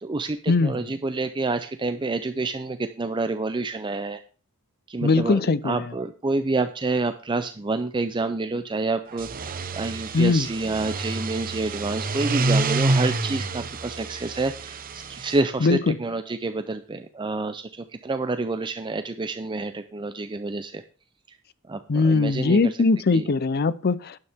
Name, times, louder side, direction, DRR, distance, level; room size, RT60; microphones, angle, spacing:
voice 1, 0.0-4.2 4.9-20.8 21.3-21.4 21.7-22.8 23.1-23.3, right 3 dB, 20° right, 9 dB, 0.5 m, -28 dB
voice 2, 5.0-5.8 10.1-10.5 15.6-16.0 21.9-24.2, left 3 dB, 45° left, 18 dB, 0.5 m, -21 dB
sound 1, 9.1-15.4, right 3 dB, 40° right, 0.8 m, -28 dB
12.0 x 9.6 x 3.5 m, 0.37 s
head